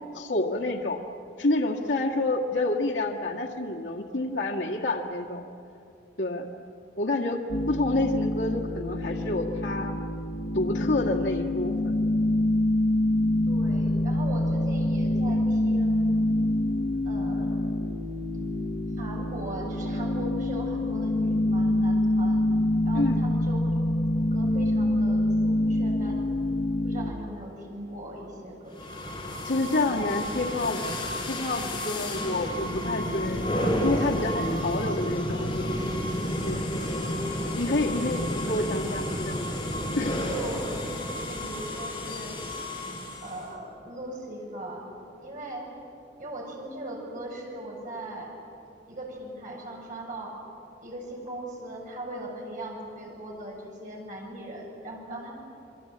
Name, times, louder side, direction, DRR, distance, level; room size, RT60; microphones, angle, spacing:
voice 1, 0.1-1.0 1.4-5.4 6.2-6.5 7.0-7.4 7.7-10.0 10.5-11.7 22.9-23.2 29.4-30.8 31.3-35.5 36.4-36.6 37.6-39.4 40.0-40.2, left 2 dB, 80° left, -1 dB, 1.9 m, -28 dB
sound 1, 7.5-27.1, left 1 dB, 50° left, 1.2 m, -26 dB
voice 2, 13.5-16.1 17.0-17.7 19.0-22.4 22.8-23.8 24.2-26.2 26.8-29.0 36.3-36.6 38.1-38.2 40.3-40.6 41.3-42.4 43.2-44.9 45.2-45.7 46.2-48.3 48.9-50.4 50.8-55.3, right 1 dB, 50° right, -1 dB, 7.4 m, -39 dB
sound 2, 28.7-43.5, left 1 dB, 25° left, 4.5 m, -31 dB
28.5 x 23.0 x 8.6 m, 2.6 s
head